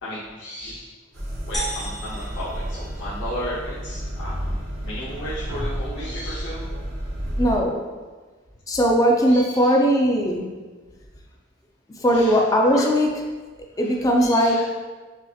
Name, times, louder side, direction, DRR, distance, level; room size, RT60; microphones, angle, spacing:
voice 1, 0.0-0.9 1.5-6.7 9.3-9.7 12.1-12.4 12.7-12.8 14.2-14.7, equal, 65° left, -9 dB, 0.8 m, -34 dB
sound 1, 1.1-7.6, equal, 85° right, 1.1 m, -31 dB
sound 2, 1.5-3.5, right 1 dB, ahead, 0.9 m, -34 dB
voice 2, 7.4-7.8 8.7-10.5 12.0-13.1 13.8-14.6, equal, 15° left, 0 dB, 0.4 m, -19 dB
5.8 x 2.8 x 2.3 m, 1.3 s
head